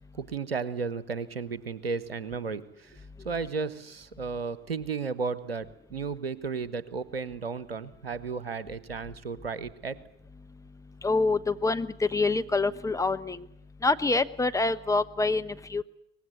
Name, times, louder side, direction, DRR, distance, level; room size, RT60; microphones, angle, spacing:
voice 1, 0.1-10.0, right 5 dB, 85° right, 17 dB, 1.1 m, -34 dB
voice 2, 11.0-13.4 13.8-15.8, left 3 dB, 10° left, 9 dB, 1.0 m, -26 dB
24.5 x 19.5 x 9.5 m, 0.74 s
figure-of-eight pair, 65°, 29 cm